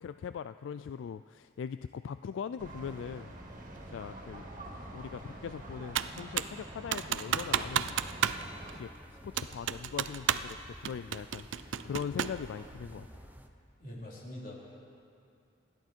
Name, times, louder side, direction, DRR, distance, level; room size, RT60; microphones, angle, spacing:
voice 1, 0.0-3.3 3.9-4.5 4.9-8.3 8.7-13.3, left 7 dB, 80° left, 12 dB, 0.3 m, -41 dB
sound 1, 2.6-8.8, right 1 dB, 45° right, 2.1 m, -46 dB
Computer keyboard, 6.0-6.6 6.9-8.4 8.7-8.8 9.4-10.5 10.9-12.4, right 9 dB, 80° right, 0.5 m, -31 dB
sound 2, 7.3-13.5, equal, 10° right, 0.8 m, -51 dB
voice 2, 13.8-14.8, left 1 dB, 50° left, -4 dB, 3.4 m, -44 dB
29.0 x 10.5 x 4.5 m, 2.5 s
head